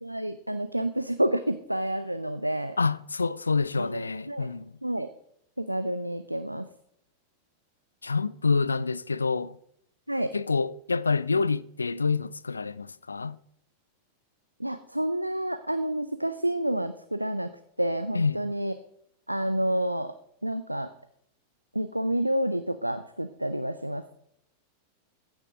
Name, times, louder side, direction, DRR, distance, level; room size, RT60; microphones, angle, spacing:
voice 1, 0.0-2.8 3.8-4.5 4.8-5.1 5.6-6.7 10.1-10.3 14.6-17.5 17.8-18.7 19.3-20.1 20.4-20.9 21.7-24.1, right 1 dB, 90° right, 0.4 m, -29 dB
voice 2, 2.8-4.7 8.0-9.6 10.3-13.4 18.1-18.5, left 4 dB, 80° left, 0.3 m, -27 dB
15.0 x 6.4 x 3.6 m
figure-of-eight pair, 90°, 0 cm